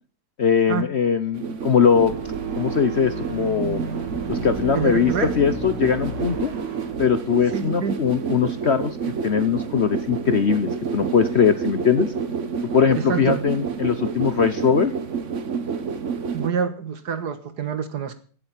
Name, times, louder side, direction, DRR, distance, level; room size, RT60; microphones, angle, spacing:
voice 1, 0.4-3.8 4.3-6.5 7.0-12.1 12.7-14.9, left 7 dB, 50° left, 12 dB, 0.9 m, -21 dB
sound 1, 1.3-16.5, right 6 dB, 45° right, 1.3 m, -30 dB
sound 2, 1.8-7.0, right 4 dB, 85° right, 2.4 m, -32 dB
voice 2, 4.7-5.3 7.5-8.0 13.0-13.4 16.3-18.2, right 7 dB, 65° right, 11 dB, 2.0 m, -26 dB
17.0 x 7.7 x 7.4 m, 0.43 s
omnidirectional pair, 1.9 m